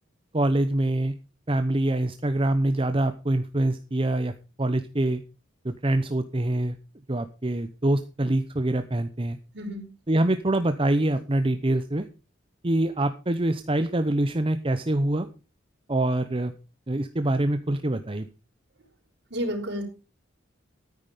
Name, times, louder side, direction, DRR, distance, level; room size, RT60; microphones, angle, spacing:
voice 1, 0.3-1.1 1.5-4.3 4.6-5.2 5.6-6.7 7.1-9.4 10.1-12.1 12.6-15.3 15.9-16.5 16.9-18.3, right 1 dB, 30° right, 10 dB, 0.8 m, -25 dB
voice 2, 19.3-19.9, equal, 60° right, -1 dB, 5.0 m, -30 dB
13.0 x 9.6 x 5.1 m, 0.33 s
head